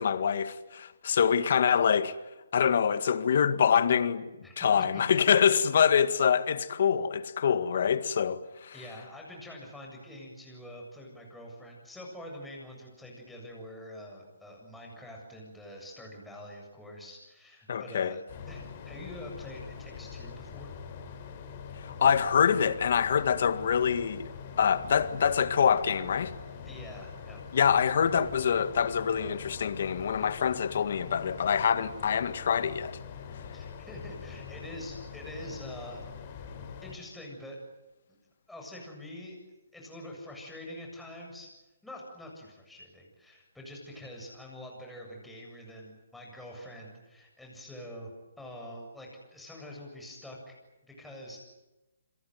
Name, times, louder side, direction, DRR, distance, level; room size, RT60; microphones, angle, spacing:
voice 1, 0.0-2.1 2.5-4.3 4.6-8.7 17.7-18.1 21.8-24.3 24.6-26.3 27.5-33.0, left 7 dB, 60° left, 1.9 m, -25 dB
voice 2, 8.7-18.2 18.5-20.7 26.7-27.4 33.5-36.5 36.8-37.6 38.5-39.4 39.7-41.5 41.8-48.1 48.4-50.5 50.8-51.4, left 1 dB, 5° left, 7.6 m, -45 dB
sound 1, 18.3-36.9, left 6 dB, 40° left, 4.3 m, -44 dB
28.0 x 22.0 x 9.3 m
hypercardioid pair, 150°, 0 cm